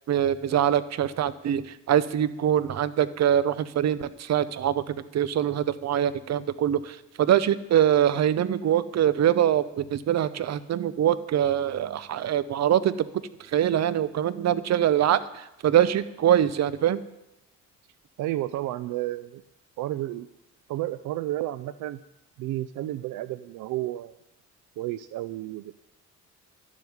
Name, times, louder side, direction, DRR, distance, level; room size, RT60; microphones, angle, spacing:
voice 1, 0.1-12.9 13.5-17.0, right 10 dB, 60° right, 16 dB, 0.8 m, -24 dB
voice 2, 18.2-19.4 19.8-20.3 20.7-22.0 22.4-24.2 24.8-25.8, right 15 dB, 85° right, 15 dB, 0.5 m, -31 dB
12.0 x 7.3 x 9.6 m, 0.89 s
cardioid pair, 90°, 30 cm